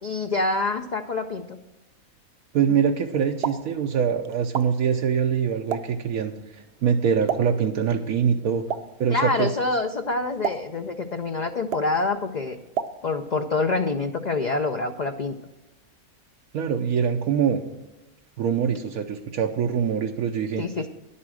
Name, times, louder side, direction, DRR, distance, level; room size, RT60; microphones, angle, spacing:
voice 1, 0.0-1.6 9.1-12.6 13.0-15.4 20.6-20.9, left 3 dB, 55° left, 6 dB, 0.5 m, -26 dB
voice 2, 2.5-8.6 9.0-9.5 16.5-17.6 18.4-20.7, right 7 dB, 80° right, 3 dB, 1.2 m, -24 dB
Explosion, 3.2-13.4, right 7 dB, 55° right, 0.8 m, -36 dB
10.5 x 8.4 x 6.3 m, 1.0 s
omnidirectional pair, 1.5 m